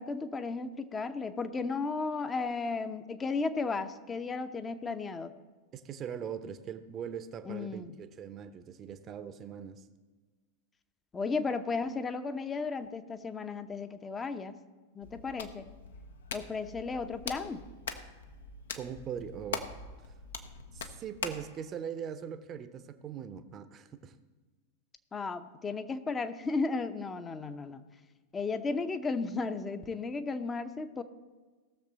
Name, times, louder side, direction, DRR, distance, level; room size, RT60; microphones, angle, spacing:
voice 1, 0.0-5.3 7.4-7.9 11.1-14.6 14.9-15.7 16.3-17.7 25.1-27.8 28.3-31.0, left 4 dB, 15° left, 10 dB, 0.7 m, -34 dB
voice 2, 5.7-9.9 18.7-19.6 20.0-20.1 20.7-24.2, right 8 dB, 30° right, 11 dB, 0.8 m, -41 dB
Hands, 15.0-21.5, left 5 dB, 65° left, 0.8 m, -42 dB
18.0 x 6.8 x 4.0 m, 1.3 s
figure-of-eight pair, 90°, 0 cm